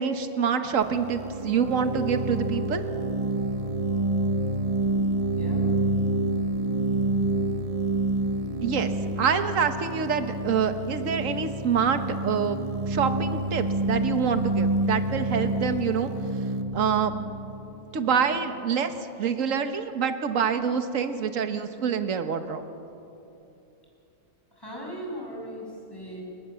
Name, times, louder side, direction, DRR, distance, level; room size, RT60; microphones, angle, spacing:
voice 1, 0.0-2.8 8.6-16.1 16.7-17.1 17.9-22.6, right 6 dB, 60° right, 8 dB, 1.6 m, -26 dB
sound 1, 0.8-18.4, right 2 dB, 30° right, 0.8 m, -28 dB
voice 2, 5.3-5.7 24.5-26.2, equal, 15° left, -2 dB, 6.6 m, -38 dB
29.5 x 21.0 x 7.0 m, 2.8 s
omnidirectional pair, 1.6 m